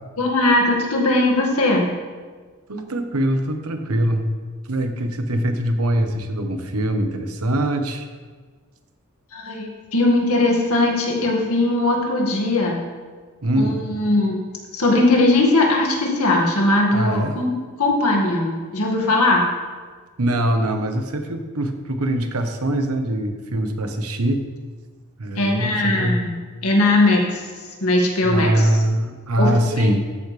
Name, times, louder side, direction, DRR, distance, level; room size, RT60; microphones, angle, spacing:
voice 1, 0.2-1.9 9.3-12.8 13.5-14.4 14.7-17.5 17.8-19.4 25.4-27.5 27.8-28.8 29.4-30.0, left 2 dB, 85° left, 0 dB, 2.0 m, -19 dB
voice 2, 2.7-4.3 4.7-8.1 13.4-13.8 16.9-17.4 20.2-24.5 25.2-26.2 28.2-30.0, right 1 dB, 85° right, 6 dB, 1.1 m, -22 dB
13.5 x 8.5 x 3.4 m, 1.5 s
head